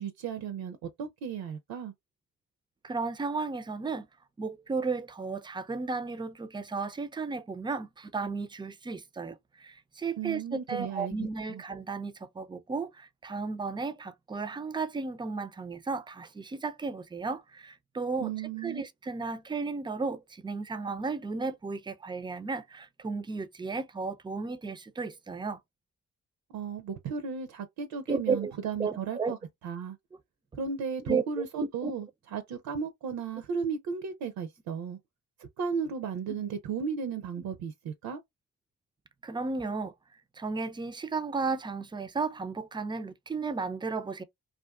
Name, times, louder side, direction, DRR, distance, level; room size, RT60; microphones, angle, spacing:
voice 1, 0.0-1.9 10.2-11.1 11.5-11.6 18.2-18.8 26.5-29.4 29.6-30.0 30.6-35.0 35.6-38.2, right 6 dB, 70° right, 0.6 m, -35 dB
voice 2, 2.8-4.1 4.4-25.6 28.1-28.5 28.8-29.3 31.0-31.9 39.2-39.9 40.4-44.2, right 4 dB, 15° right, 0.3 m, -34 dB
2.5 x 2.4 x 2.3 m
supercardioid pair, 55°, 37 cm